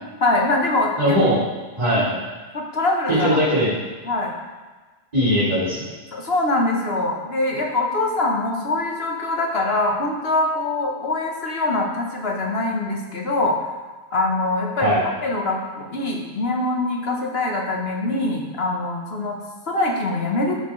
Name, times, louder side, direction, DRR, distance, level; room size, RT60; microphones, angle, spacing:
voice 1, 0.2-1.2 1.9-2.1 2.5-3.4 4.0-4.3 6.1-13.7 14.1-19.4 19.7-20.6, left 2 dB, 55° left, 0 dB, 1.5 m, -23 dB
voice 2, 1.0-1.4 1.8-2.2 3.1-3.7 5.1-5.9 14.8-15.0, equal, 30° right, -11 dB, 3.2 m, -19 dB
10.0 x 7.6 x 3.2 m, 1.3 s
omnidirectional pair, 1.3 m